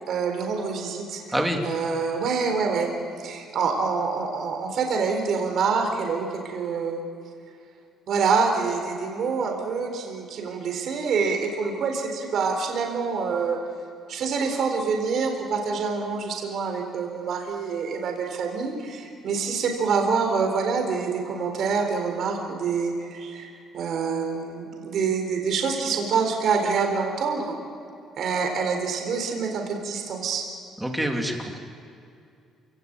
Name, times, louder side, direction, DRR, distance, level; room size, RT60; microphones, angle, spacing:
voice 1, 0.1-1.2 1.6-2.9 3.2-7.0 8.1-13.6 14.1-23.5 23.7-27.5 28.2-30.4, right 5 dB, 55° right, 3 dB, 4.0 m, -26 dB
voice 2, 30.8-31.6, right 1 dB, 5° right, 2 dB, 2.8 m, -26 dB
28.0 x 17.5 x 8.9 m, 2.5 s
cardioid pair, 140°, 0 cm